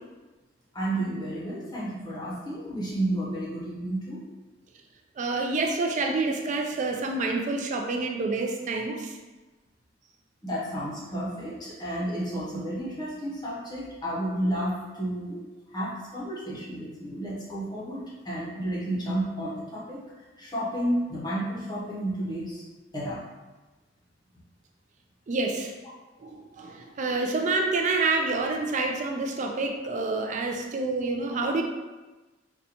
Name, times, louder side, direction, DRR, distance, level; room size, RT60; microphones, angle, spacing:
voice 1, 0.7-4.2 8.9-9.0 10.4-15.4 15.7-20.0 20.4-22.6 22.9-23.2, right 1 dB, 25° left, -6 dB, 0.7 m, -31 dB
voice 2, 5.2-9.1 25.3-25.7 26.2-26.3 26.6-31.6, right 3 dB, 40° right, 2 dB, 0.4 m, -27 dB
4.0 x 2.2 x 2.8 m, 1.2 s
head